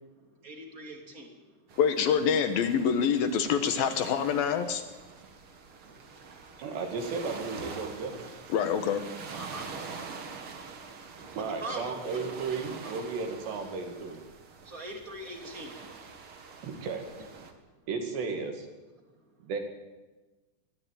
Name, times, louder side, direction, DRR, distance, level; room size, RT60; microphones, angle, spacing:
voice 1, 0.4-1.6 5.8-6.1 9.3-9.7 11.1-12.2 12.8-12.9 14.6-15.7, right 1 dB, 25° right, 3 dB, 2.4 m, -43 dB
sound 1, 1.7-17.5, right 5 dB, 45° right, 1.8 m, -45 dB
voice 2, 1.8-4.8 8.5-9.0, left 7 dB, 70° left, 9 dB, 2.5 m, -26 dB
voice 3, 6.6-8.3 11.3-14.2 16.6-17.1 17.9-18.7 19.4-19.6, right 4 dB, 70° right, 4 dB, 4.4 m, -34 dB
23.0 x 15.0 x 9.2 m, 1.2 s
omnidirectional pair, 5.2 m